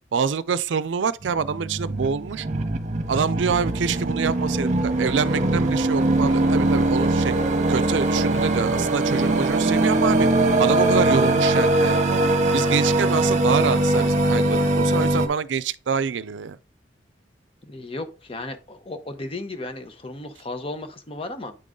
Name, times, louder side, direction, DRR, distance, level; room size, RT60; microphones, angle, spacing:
voice 1, 0.1-2.5 3.1-7.3 7.7-10.3 10.6-12.2 12.5-16.6, right 6 dB, 85° right, 0.4 m, -26 dB
sound 1, 1.2-15.3, right 2 dB, 40° right, 1.0 m, -21 dB
voice 2, 17.6-21.6, left 2 dB, 30° left, 0.8 m, -35 dB
8.8 x 3.8 x 3.7 m
head